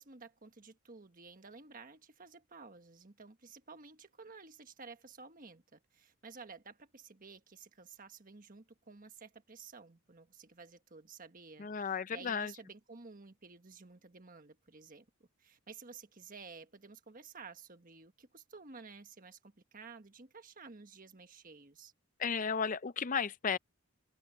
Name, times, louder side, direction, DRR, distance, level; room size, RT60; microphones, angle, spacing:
voice 1, 0.0-21.9, right 4 dB, 40° right, 1.4 m, -53 dB
voice 2, 11.6-12.5 22.2-23.6, left 6 dB, 40° left, 0.5 m, -34 dB
open air
head